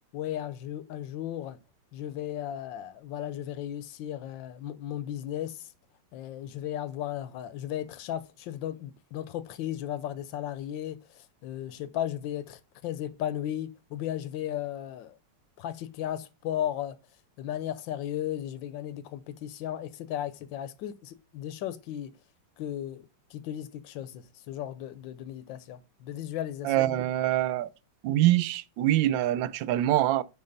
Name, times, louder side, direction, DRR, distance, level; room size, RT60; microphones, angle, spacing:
voice 1, 0.1-1.6 1.9-5.6 6.1-15.1 15.6-17.0 17.4-22.1 22.6-23.0 23.3-26.7, left 11 dB, 85° left, 1.4 m, -35 dB
voice 2, 26.6-27.7 28.0-30.2, right 14 dB, 85° right, 1.3 m, -24 dB
8.7 x 4.4 x 3.9 m
omnidirectional pair, 2.0 m